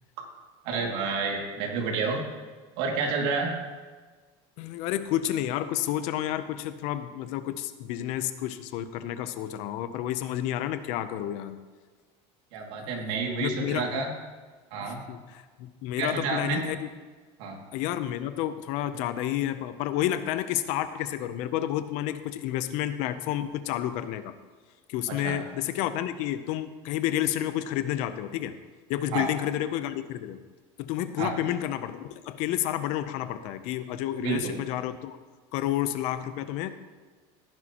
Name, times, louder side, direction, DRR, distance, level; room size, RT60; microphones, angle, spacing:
voice 1, 0.6-2.4 2.8-3.5 12.5-14.1 14.7-15.0 16.0-16.6 17.4-17.6 25.1-25.4 29.1-29.3 31.2-31.4 34.2-34.6, right 4 dB, 70° right, 0 dB, 2.4 m, -29 dB
voice 2, 4.6-11.6 12.8-13.1 13.4-14.0 14.8-16.9 17.7-24.3 24.9-28.6 28.9-30.4 30.8-35.2 35.5-36.7, left 12 dB, 55° left, 12 dB, 0.7 m, -30 dB
16.0 x 10.5 x 3.0 m, 1.4 s
cardioid pair, 165°, 14 cm